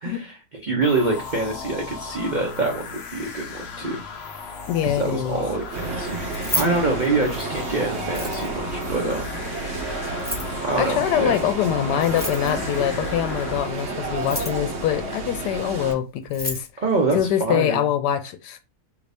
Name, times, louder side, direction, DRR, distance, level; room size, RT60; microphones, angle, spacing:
voice 1, 0.0-0.3 0.6-4.0 4.8-9.4 10.6-11.4 16.8-17.9, right 3 dB, 70° right, 0.4 m, -25 dB
sound 1, 0.8-13.6, left 5 dB, 60° left, 0.6 m, -36 dB
voice 2, 4.7-5.4 10.8-16.7 17.1-18.6, left 10 dB, 85° left, 1.1 m, -24 dB
sound 2, 5.7-15.9, right 3 dB, 55° right, 0.8 m, -31 dB
Keys jangling, 6.2-7.6 8.0-8.7 10.1-10.6 12.0-12.7 14.1-14.7 15.9-16.0 16.2-16.7, left 1 dB, 15° left, 0.4 m, -31 dB
2.9 x 2.6 x 3.3 m
omnidirectional pair, 1.8 m